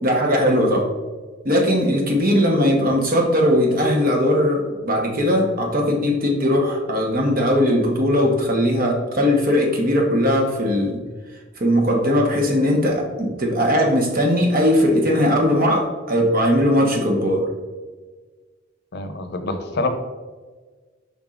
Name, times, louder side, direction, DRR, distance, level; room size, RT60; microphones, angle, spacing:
voice 1, 0.0-0.9 1.4-11.0 11.6-17.5, equal, 45° right, 1 dB, 1.1 m, -19 dB
voice 2, 18.9-19.9, left 3 dB, 55° left, 7 dB, 0.7 m, -26 dB
7.0 x 5.5 x 2.5 m, 1.4 s
head